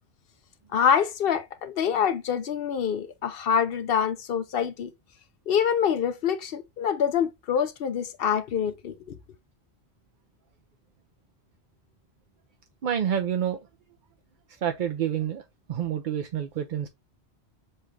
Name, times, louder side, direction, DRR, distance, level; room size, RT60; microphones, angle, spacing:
voice 1, 0.7-4.9 5.5-9.2, left 8 dB, 65° left, 0.7 m, -26 dB
voice 2, 12.8-13.6 14.6-15.4 15.7-16.9, right 9 dB, 60° right, 0.6 m, -28 dB
6.7 x 2.4 x 3.2 m
omnidirectional pair, 1.1 m